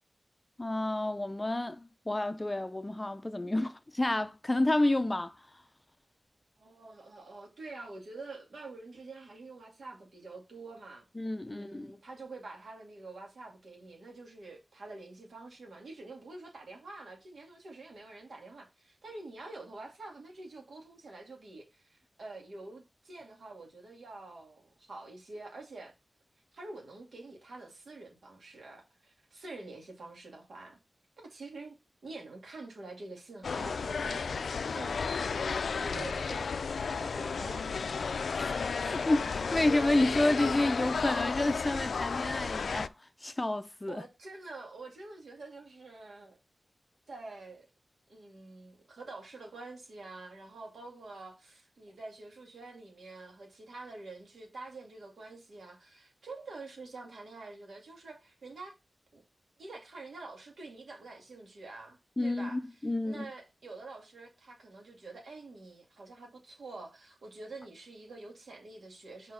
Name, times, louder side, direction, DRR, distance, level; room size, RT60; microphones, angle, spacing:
voice 1, 0.6-5.3 11.2-11.9 38.4-42.9 43.2-44.0 62.2-63.3, left 2 dB, 20° left, 0.5 m, -30 dB
voice 2, 6.6-11.0 11.4-25.9 26.5-30.8 31.2-34.3 34.7-35.0 35.8-36.5 36.9-38.1 38.9-39.1 43.9-46.4 47.1-47.7 48.1-58.7 59.1-59.2 59.6-62.6 63.0-69.3, right 3 dB, 85° right, 2.3 m, -47 dB
sound 1, 33.4-42.9, left 5 dB, 80° left, 0.3 m, -33 dB
5.1 x 4.3 x 5.5 m
wide cardioid pair, 100°, 0 cm